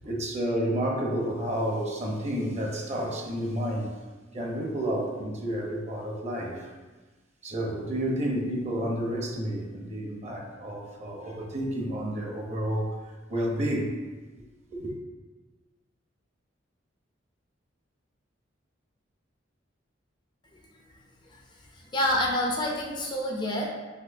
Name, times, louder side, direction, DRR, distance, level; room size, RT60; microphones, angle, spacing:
voice 1, 0.0-3.9 4.3-6.7 7.4-12.9 13.3-13.9 14.7-14.9, right 1 dB, 35° right, -1 dB, 0.8 m, -30 dB
voice 2, 21.9-23.7, left 1 dB, 25° left, 0 dB, 0.5 m, -27 dB
5.9 x 3.0 x 2.6 m, 1.3 s
head